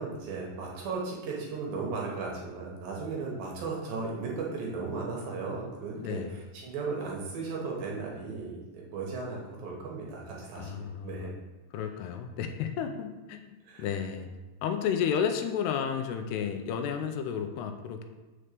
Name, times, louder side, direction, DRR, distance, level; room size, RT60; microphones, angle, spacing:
voice 1, 0.0-11.3 13.7-13.9, right 4 dB, 65° right, -2 dB, 2.7 m, -36 dB
voice 2, 6.0-6.3 10.6-11.3 11.7-13.5 13.8-14.3 14.6-18.0, left 7 dB, 80° left, 6 dB, 2.6 m, -32 dB
6.7 x 4.3 x 6.6 m, 1.2 s
omnidirectional pair, 4.7 m